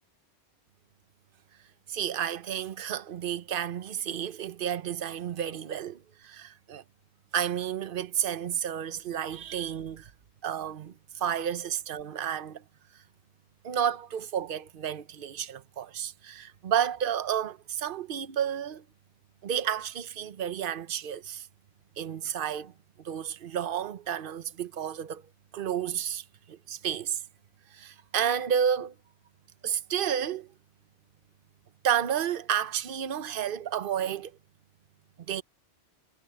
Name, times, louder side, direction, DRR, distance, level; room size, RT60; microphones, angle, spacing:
voice 1, 1.9-6.8 7.3-10.1 10.4-12.6 13.6-18.8 19.4-21.5 22.0-22.7 23.0-25.2 25.5-27.2 27.7-28.9 29.6-30.5 31.8-34.3 35.3-35.4, right 9 dB, 55° right, 1.0 m, -31 dB
omnidirectional pair, 1.1 m